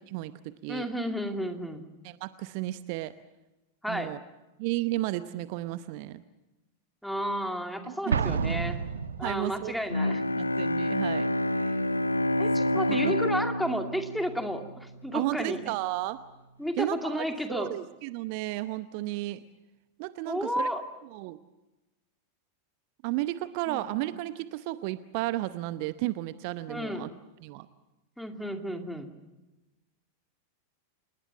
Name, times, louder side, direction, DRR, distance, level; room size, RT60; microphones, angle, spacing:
voice 1, 0.1-0.9 2.0-3.1 3.9-4.2 4.6-6.2 7.8-8.4 9.2-9.8 10.4-11.8 12.9-13.1 15.1-16.2 16.8-19.4 20.0-20.7 21.1-21.4 23.0-27.1 27.4-27.7, right 17 dB, 45° right, 14 dB, 0.8 m, -33 dB
voice 2, 0.7-1.8 3.8-4.1 7.0-8.8 9.2-10.2 12.4-15.6 16.6-17.7 20.3-20.8 23.7-24.2 26.7-27.1 28.2-29.1, equal, ahead, 5 dB, 2.4 m, -32 dB
Explosion, 8.1-9.7, right 6 dB, 70° right, 1.1 m, -29 dB
Bowed string instrument, 9.9-15.2, left 1 dB, 80° left, 0.8 m, -28 dB
27.5 x 20.0 x 7.2 m, 1.1 s
figure-of-eight pair, 90°, 0 cm